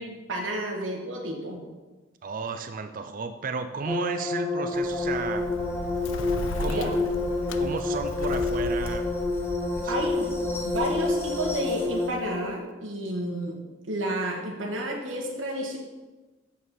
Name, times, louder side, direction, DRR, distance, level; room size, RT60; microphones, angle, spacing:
voice 1, 0.0-1.6 6.6-6.9 9.9-10.3 10.6-13.6 13.9-15.8, right 1 dB, 85° right, -1 dB, 1.4 m, -31 dB
voice 2, 2.2-5.5 6.4-7.0 7.4-9.1 9.7-10.2 10.6-10.7, right 4 dB, 45° right, 8 dB, 0.4 m, -34 dB
sound 1, 3.9-12.1, left 2 dB, 10° left, 0.9 m, -28 dB
Bird, 4.7-12.5, left 2 dB, 85° left, 0.5 m, -37 dB
7.4 x 4.2 x 6.3 m, 1.2 s
head